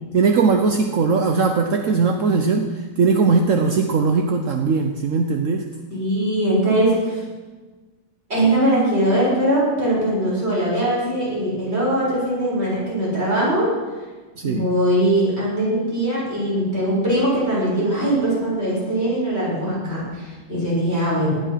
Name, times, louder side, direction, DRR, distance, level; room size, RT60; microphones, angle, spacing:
voice 1, 0.1-5.7 14.4-14.7, right 4 dB, 65° right, 5 dB, 1.3 m, -19 dB
voice 2, 5.9-7.2 8.3-13.7 14.4-21.4, right 1 dB, 45° right, -6 dB, 6.9 m, -21 dB
18.5 x 11.5 x 5.8 m, 1.3 s
omnidirectional pair, 1.5 m